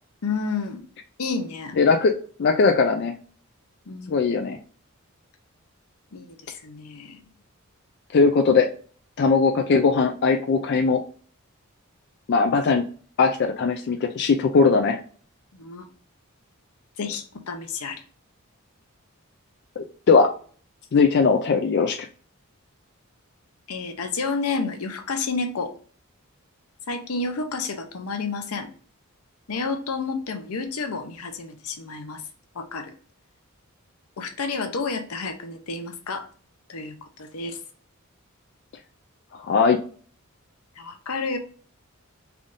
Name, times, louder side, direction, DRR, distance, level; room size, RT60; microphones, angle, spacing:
voice 1, 0.2-0.9 1.2-1.7 3.9-4.3 6.1-7.2 15.5-15.9 17.0-18.0 23.7-25.7 26.9-28.7 29.5-32.2 32.5-32.9 34.2-36.3 36.7-37.6 40.8-41.4, left 4 dB, 85° left, 6 dB, 0.7 m, -30 dB
voice 2, 1.8-2.1 2.4-3.1 4.1-4.6 8.1-8.7 9.2-11.0 12.3-12.8 13.2-15.0 19.8-20.3 20.9-22.0 39.3-39.8, left 4 dB, 50° left, 5 dB, 0.3 m, -19 dB
3.5 x 2.6 x 3.6 m, 0.43 s
head